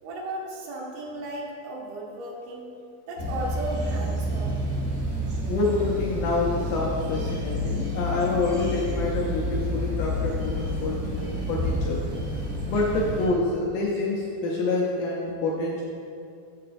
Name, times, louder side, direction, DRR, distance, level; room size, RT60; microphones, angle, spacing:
voice 1, 0.0-2.7 3.1-4.6, right 1 dB, 85° right, -3 dB, 3.0 m, -35 dB
sound 1, 3.2-13.3, left 1 dB, 60° right, 1.4 m, -29 dB
voice 2, 5.5-12.1 12.6-15.8, left 2 dB, 80° left, -4 dB, 1.8 m, -27 dB
7.5 x 6.6 x 4.1 m, 2.4 s
omnidirectional pair, 4.6 m